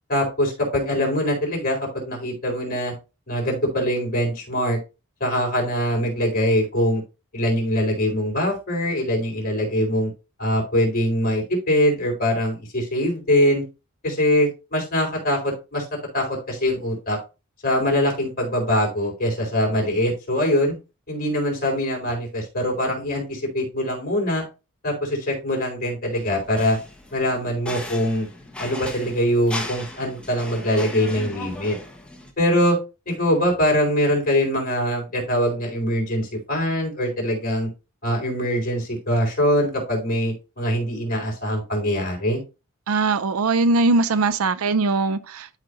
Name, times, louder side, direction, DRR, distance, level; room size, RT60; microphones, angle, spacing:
voice 1, 0.1-2.9 3.3-4.8 5.2-7.0 7.3-10.1 10.4-13.6 14.0-15.8 16.1-17.2 17.6-20.8 21.1-24.4 24.8-26.8 27.1-28.3 28.6-31.8 32.4-32.8 33.1-37.7 38.0-42.4, equal, 40° left, 4.2 m, -23 dB
sound 1, 26.1-32.3, left 2 dB, 5° left, 1.3 m, -37 dB
voice 2, 42.9-45.6, right 3 dB, 65° right, 0.5 m, -21 dB
12.5 x 4.9 x 2.6 m
head